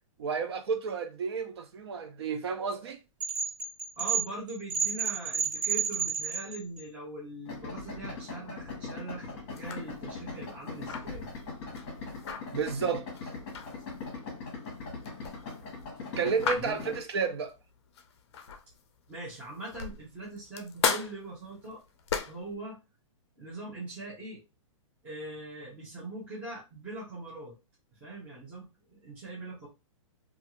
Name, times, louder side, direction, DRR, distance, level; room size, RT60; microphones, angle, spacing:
voice 1, 0.2-3.0 12.5-13.1 16.2-17.5, right 5 dB, 50° right, 0.5 m, -31 dB
sound 1, 3.2-6.8, right 6 dB, 30° right, 1.0 m, -30 dB
voice 2, 4.0-11.3 16.6-16.9 19.1-21.8 22.3-22.8 23.4-24.4 25.0-27.6 27.9-29.7, right 2 dB, 10° right, 0.7 m, -41 dB
Idling, 7.5-17.0, left 4 dB, 25° left, 1.0 m, -41 dB
sound 2, 9.5-18.8 19.3-22.5, left 6 dB, 50° left, 0.5 m, -36 dB
2.6 x 2.4 x 2.9 m
hypercardioid pair, 175°, 17 cm